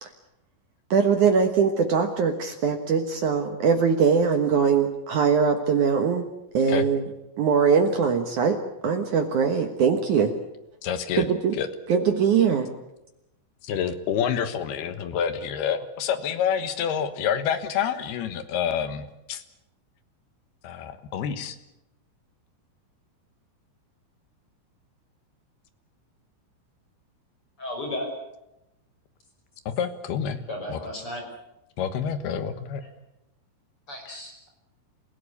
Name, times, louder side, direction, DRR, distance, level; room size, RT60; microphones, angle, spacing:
voice 1, 0.9-6.2 6.5-7.0 7.4-10.3 11.2-11.6 11.9-12.7, right 6 dB, 75° right, 6 dB, 1.8 m, -22 dB
voice 2, 10.8-11.3 11.6-11.7 13.6-19.4 20.6-21.6 29.7-30.4 30.7-30.8 31.8-32.8, left 8 dB, 65° left, 11 dB, 2.8 m, -28 dB
voice 3, 27.6-28.1 30.5-31.2 33.9-34.5, left 1 dB, 25° left, 2 dB, 6.4 m, -34 dB
28.5 x 16.5 x 8.4 m, 0.88 s
omnidirectional pair, 5.7 m